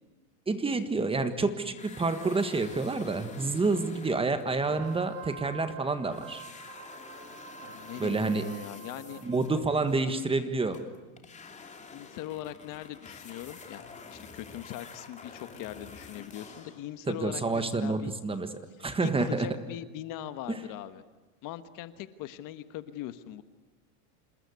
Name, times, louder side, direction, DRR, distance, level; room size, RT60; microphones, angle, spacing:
voice 1, 0.5-6.4 8.0-8.4 9.2-10.8 17.1-18.5 18.8-19.5 20.5-20.6, right 3 dB, 10° right, 10 dB, 1.5 m, -28 dB
sound 1, 1.7-5.8 6.1-16.9, left 4 dB, 15° left, 2.8 m, -49 dB
Wind instrument woodwind instrument, 4.6-9.8, right 8 dB, 60° right, 3.7 m, -48 dB
voice 2, 7.6-9.2 10.0-10.3 11.9-18.1 19.0-21.0 21.4-23.4, left 13 dB, 45° left, 12 dB, 1.4 m, -41 dB
27.5 x 20.5 x 9.7 m, 1.2 s
supercardioid pair, 150°, 47 cm